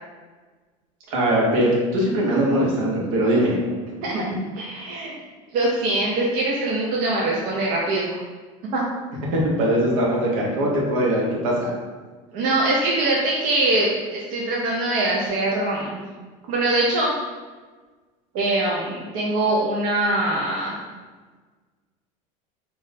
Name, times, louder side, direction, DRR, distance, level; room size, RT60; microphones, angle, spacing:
voice 1, 1.1-4.0 9.3-11.7, right 1 dB, 80° right, -3 dB, 0.9 m, -21 dB
voice 2, 4.6-5.2 5.5-8.2 8.7-8.8 12.3-16.0 16.5-17.1 18.3-20.7, right 2 dB, 60° right, -4 dB, 0.6 m, -23 dB
2.4 x 2.1 x 3.9 m, 1.4 s
supercardioid pair, 110°, 16 cm